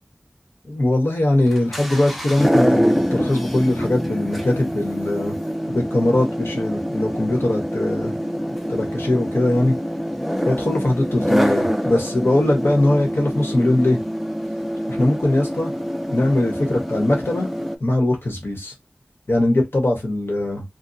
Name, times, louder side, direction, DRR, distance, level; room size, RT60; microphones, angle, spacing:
voice 1, 0.6-5.4 5.7-8.2 8.7-9.7 10.4-14.0 14.9-15.7 16.1-17.5 17.8-18.7 19.3-20.6, left 1 dB, 70° left, 1.1 m, -21 dB
sound 1, 1.5-17.8, equal, ahead, 0.5 m, -25 dB
2.6 x 2.1 x 2.6 m
wide cardioid pair, 40°, 4 cm